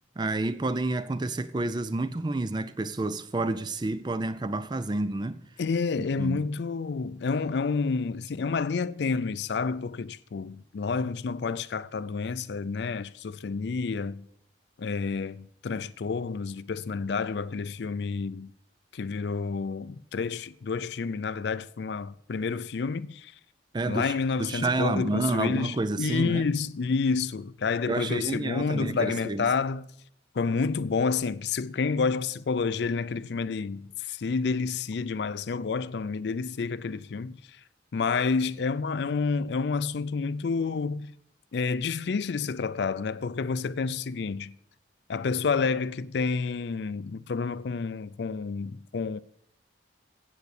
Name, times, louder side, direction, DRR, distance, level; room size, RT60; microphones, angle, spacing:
voice 1, 0.2-5.4 6.0-6.4 23.7-26.5 27.9-29.5, right 2 dB, 25° right, 0.4 m, -29 dB
voice 2, 5.6-14.3 14.8-18.5 18.9-23.3 23.9-29.9 30.4-37.4 37.9-41.1 41.5-44.5 45.1-49.2, left 4 dB, 65° left, 0.4 m, -29 dB
9.3 x 8.1 x 6.5 m
head